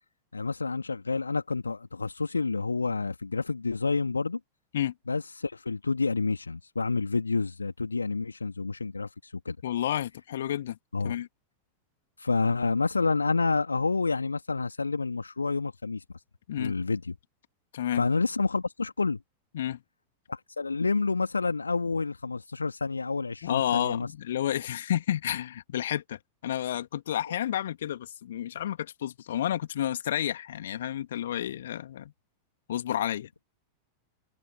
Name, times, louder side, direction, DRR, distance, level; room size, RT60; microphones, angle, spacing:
voice 1, 0.3-4.4 5.1-9.6 10.9-11.1 12.2-16.0 16.6-17.1 18.0-19.2 20.3-24.1, left 4 dB, 80° left, 2.4 m, -29 dB
voice 2, 9.6-10.8 11.0-11.3 16.5-16.7 17.7-18.0 19.5-19.8 23.4-32.1 32.7-33.3, left 11 dB, 60° left, 2.6 m, -30 dB
figure-of-eight pair, 90°, 0 cm